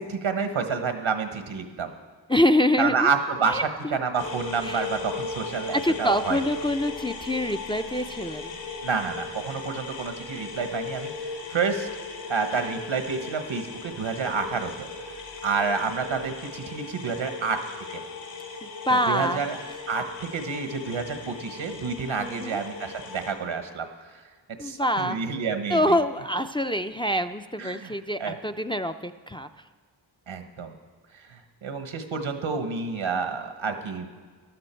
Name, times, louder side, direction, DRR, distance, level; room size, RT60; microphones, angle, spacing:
voice 1, 0.0-1.9 2.8-3.6 3.9-6.4 8.8-11.1 11.5-11.9 12.3-14.9 15.4-17.6 17.9-18.0 18.9-19.6 19.9-24.2 24.6-26.0 27.6-27.9 28.2-28.4 30.3-30.7 31.3-34.1, right 5 dB, 85° right, 7 dB, 1.3 m, -29 dB
voice 2, 2.3-3.1 3.5-4.0 4.6-4.9 5.7-8.5 18.6-19.8 22.2-22.6 24.6-25.2 25.7-29.5, left 1 dB, 10° left, 7 dB, 0.4 m, -26 dB
sound 1, 4.2-23.3, left 4 dB, 75° left, 3.0 m, -38 dB
15.5 x 11.5 x 4.5 m, 1.5 s
cardioid pair, 55°, 46 cm